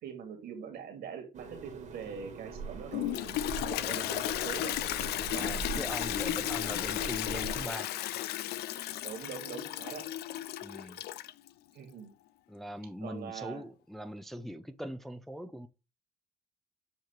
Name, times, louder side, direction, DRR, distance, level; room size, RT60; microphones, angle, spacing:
voice 1, 0.0-3.1 3.6-4.8 5.3-5.5 9.0-10.1 11.7-12.1 13.0-13.6, right 7 dB, 70° right, 2.2 m, -43 dB
sound 1, 1.3-7.7, right 5 dB, 45° right, 1.6 m, -43 dB
Toilet flush, 2.9-11.5, left 13 dB, 75° left, 0.5 m, -34 dB
voice 2, 5.4-8.0 10.6-11.0 12.5-15.7, equal, ahead, 0.4 m, -41 dB
7.2 x 3.0 x 4.4 m
cardioid pair, 110°, 17 cm